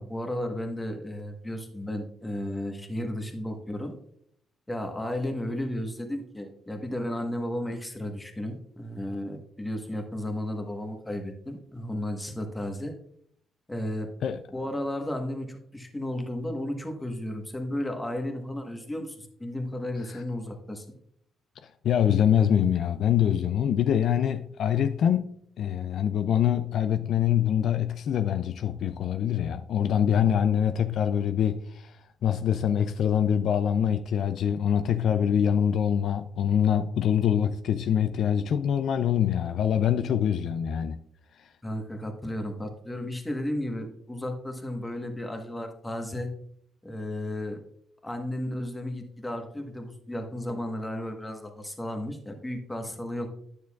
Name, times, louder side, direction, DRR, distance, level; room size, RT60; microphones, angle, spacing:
voice 1, 0.0-3.9 4.7-12.9 13.7-14.1 14.5-20.8 41.6-46.3 46.8-47.6 48.0-53.3, left 1 dB, 10° left, 1.2 m, -33 dB
voice 2, 21.8-31.9 32.2-41.0, left 9 dB, 70° left, 0.3 m, -24 dB
9.4 x 6.6 x 2.3 m
cardioid pair, 90°, 0 cm